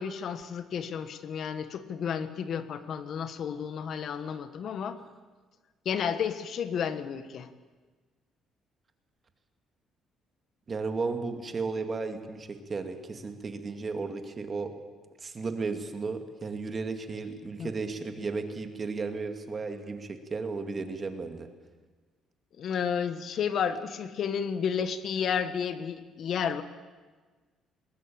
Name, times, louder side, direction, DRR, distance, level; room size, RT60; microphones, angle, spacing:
voice 1, 0.0-5.0 5.8-7.5 17.6-17.7 22.6-26.6, left 7 dB, 55° left, 12 dB, 1.3 m, -32 dB
voice 2, 10.7-14.7 15.2-21.5, right 4 dB, 30° right, 6 dB, 2.2 m, -34 dB
21.0 x 20.0 x 8.7 m, 1.4 s
cardioid pair, 125°, 0 cm